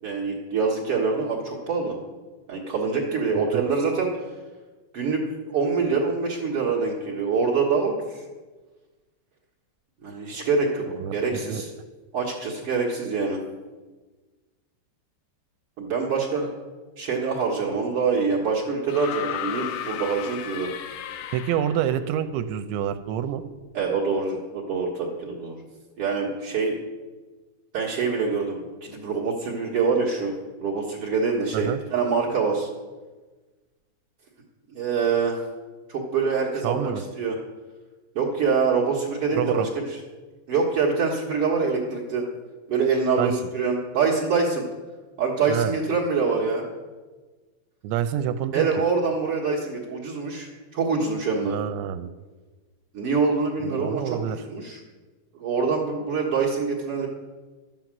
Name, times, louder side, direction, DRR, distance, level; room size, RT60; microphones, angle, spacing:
voice 1, 0.0-2.0 2.5-4.4 4.9-8.3 10.0-10.8 11.1-11.7 12.1-13.4 15.8-16.5 17.0-20.7 23.7-25.6 26.0-26.7 27.7-32.7 34.7-35.4 35.9-37.4 38.1-40.0 40.5-42.3 42.7-44.6 45.2-46.7 48.5-51.6 52.9-54.2 54.5-54.8 55.3-57.1, right 4 dB, 65° right, -4 dB, 1.4 m, -25 dB
voice 2, 10.9-11.6 21.3-23.4 31.5-31.8 36.6-37.0 39.4-39.7 43.2-43.3 45.5-45.7 47.8-48.7 51.4-52.1 53.6-54.4, right 10 dB, 85° right, 10 dB, 2.8 m, -27 dB
sound 1, 18.9-22.0 23.2-23.3, left 11 dB, 80° left, 2.1 m, -34 dB
12.0 x 9.3 x 7.6 m, 1.3 s
omnidirectional pair, 5.3 m